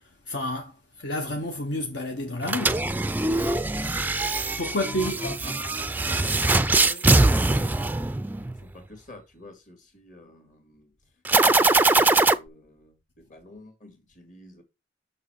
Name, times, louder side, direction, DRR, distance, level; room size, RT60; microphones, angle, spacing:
voice 1, 0.3-2.8 4.6-5.3, left 1 dB, 70° left, 1.0 m, -30 dB
sound 1, 2.4-8.6 11.3-12.3, right 2 dB, 10° right, 0.3 m, -22 dB
voice 2, 3.7-4.1 5.0-7.1 7.5-10.9 11.4-14.6, left 1 dB, 45° left, 2.1 m, -48 dB
6.5 x 5.6 x 4.5 m
head